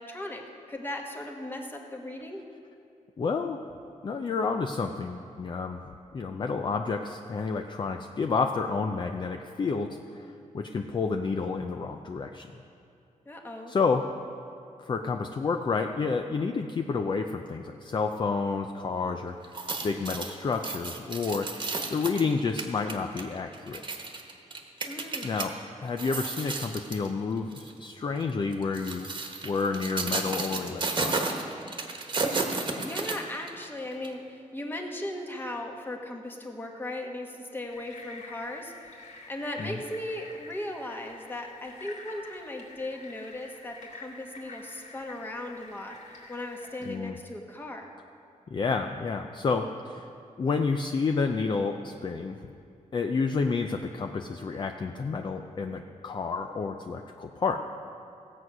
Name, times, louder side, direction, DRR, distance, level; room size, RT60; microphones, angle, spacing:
voice 1, 0.0-2.4 13.2-13.7 24.8-25.3 32.4-38.7 39.3-47.9, left 1 dB, 15° left, 2 dB, 1.3 m, -37 dB
voice 2, 3.2-3.6 4.0-5.8 6.1-10.3 10.5-12.5 13.7-14.0 14.8-19.3 19.8-21.5 21.9-23.8 25.2-25.5 25.8-29.1 29.4-31.5 39.6-39.8 46.8-47.2 48.5-50.1 50.4-52.4 52.9-57.6, left 4 dB, 35° left, 5 dB, 0.5 m, -30 dB
sound 1, 19.4-25.5 25.9-27.1 27.5-27.7 28.5-33.7 34.0-34.1, right 3 dB, 35° right, 1.3 m, -33 dB
sound 2, 37.7-46.9, left 3 dB, 70° left, 2.6 m, -48 dB
17.0 x 8.0 x 6.1 m, 2.5 s
wide cardioid pair, 150°, 13 cm